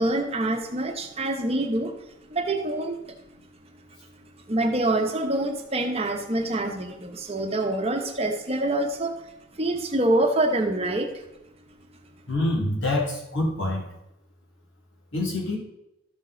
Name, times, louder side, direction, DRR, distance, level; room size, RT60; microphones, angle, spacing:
voice 1, 0.0-1.9 2.3-3.2 4.5-9.2 9.5-11.2, right 1 dB, 30° right, 4 dB, 1.0 m, -26 dB
voice 2, 12.3-13.9 15.1-15.6, left 2 dB, 60° left, -3 dB, 2.4 m, -26 dB
13.5 x 5.4 x 3.9 m, 0.89 s
head